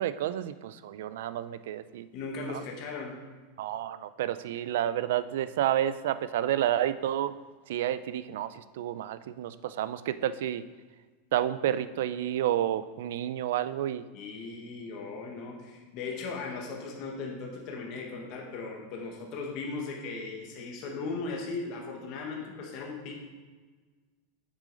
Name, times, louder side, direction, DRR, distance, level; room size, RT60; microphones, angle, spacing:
voice 1, 0.0-2.1 3.6-7.3 7.7-10.6 11.3-14.0, right 11 dB, 65° right, 14 dB, 0.3 m, -30 dB
voice 2, 2.1-3.2 14.1-23.1, left 4 dB, 35° left, 0 dB, 1.1 m, -37 dB
7.5 x 6.3 x 3.9 m, 1.4 s
supercardioid pair, 175°, 0 cm